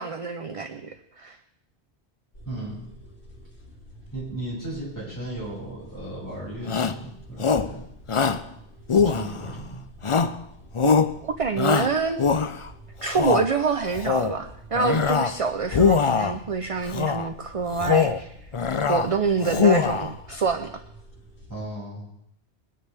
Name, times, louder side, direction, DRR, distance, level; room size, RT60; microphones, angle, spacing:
voice 1, 0.0-1.4 10.8-10.9 11.2-12.2 13.0-18.3 18.9-20.7, right 5 dB, 40° right, 7 dB, 0.7 m, -26 dB
sound 1, 2.3-21.6, right 1 dB, 80° left, 2.7 m, -48 dB
voice 2, 2.4-2.9 4.1-7.8 9.0-9.8 21.5-22.1, right 1 dB, 15° left, -7 dB, 6.5 m, -35 dB
Shout, 6.7-7.0 7.4-7.7 8.1-8.4 8.9-9.6 10.0-10.4 10.7-11.1 11.6-12.7 13.1-13.5 13.9-14.4 14.7-15.4 15.7-16.4 16.9-17.3 17.7-18.2 18.5-19.1 19.4-20.1, left 5 dB, 40° left, 0.5 m, -22 dB
22.5 x 9.9 x 3.4 m, 0.74 s
omnidirectional pair, 1.1 m